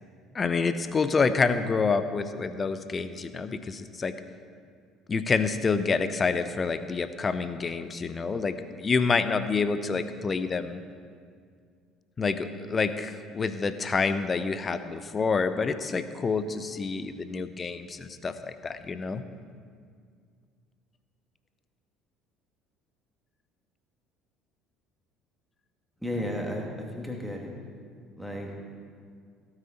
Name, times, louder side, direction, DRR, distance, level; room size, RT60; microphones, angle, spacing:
voice 1, 0.3-4.2 5.1-10.8 12.2-19.2, left 4 dB, 30° left, 12 dB, 0.7 m, -28 dB
voice 2, 26.0-27.5 28.2-28.6, left 1 dB, ahead, -1 dB, 2.5 m, -33 dB
17.0 x 9.0 x 4.4 m, 2.1 s
figure-of-eight pair, 60°, 0 cm